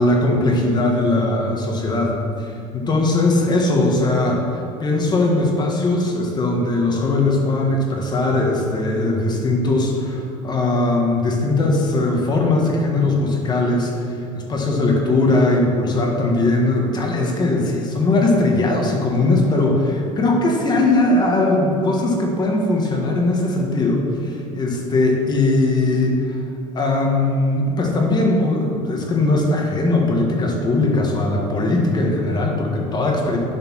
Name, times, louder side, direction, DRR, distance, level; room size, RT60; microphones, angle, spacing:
voice 1, 0.0-4.4 4.8-26.4 26.7-33.4, left 2 dB, 30° left, 0 dB, 1.9 m, -19 dB
11.0 x 5.1 x 6.4 m, 2.7 s
cardioid pair, 125°, 15 cm